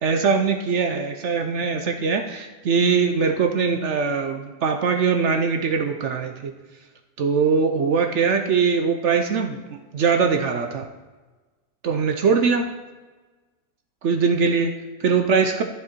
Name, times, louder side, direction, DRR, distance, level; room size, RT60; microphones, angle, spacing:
voice 1, 0.0-6.5 7.2-9.6 9.9-10.9 11.8-12.7 14.0-15.6, right 5 dB, 60° right, 6 dB, 0.8 m, -21 dB
11.0 x 7.2 x 4.3 m, 1.3 s
omnidirectional pair, 1.7 m